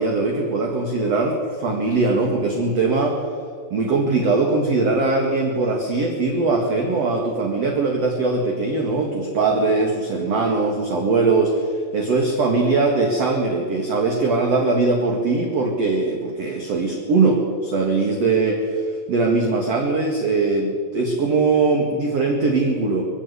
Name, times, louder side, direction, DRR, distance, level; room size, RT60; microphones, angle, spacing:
voice 1, 0.0-3.2 3.7-23.0, right 3 dB, 45° right, 2 dB, 2.4 m, -21 dB
21.5 x 17.0 x 9.8 m, 2.1 s
omnidirectional pair, 5.1 m